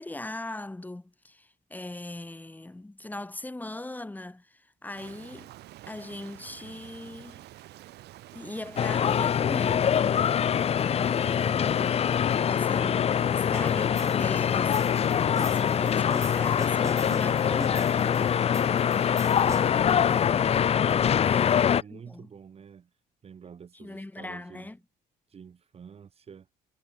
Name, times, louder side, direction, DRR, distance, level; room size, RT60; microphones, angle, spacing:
voice 1, 0.0-5.5 5.9-7.4 8.3-10.0 10.8-12.2 12.5-18.2 19.8-20.2 21.2-22.3 23.7-24.8, left 2 dB, 10° left, 2.7 m, -40 dB
Rain, 4.9-20.8, right 16 dB, 75° right, 5.7 m, -48 dB
sound 1, 8.8-21.8, left 8 dB, 35° left, 0.6 m, -24 dB
sound 2, 13.5-19.9, right 3 dB, 20° right, 1.2 m, -44 dB
voice 2, 19.6-20.3 21.1-22.9 23.2-24.7 25.3-26.5, right 7 dB, 35° right, 1.7 m, -48 dB
cardioid pair, 110°, 17 cm